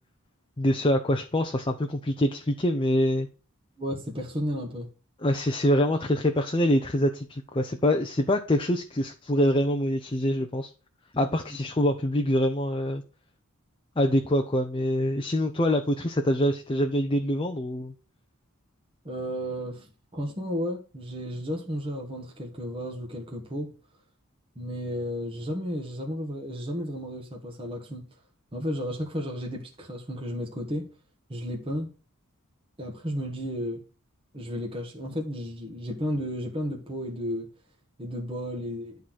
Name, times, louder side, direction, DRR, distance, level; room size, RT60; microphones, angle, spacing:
voice 1, 0.6-3.3 5.2-10.7 11.1-13.0 14.0-17.9, left 1 dB, 25° left, 0.7 m, -25 dB
voice 2, 3.8-4.9 19.0-23.7 24.5-28.1 28.5-30.9 31.3-31.9 32.8-33.8 34.3-37.5 38.0-39.0, equal, 25° right, 1.6 m, -33 dB
11.0 x 4.0 x 6.3 m
head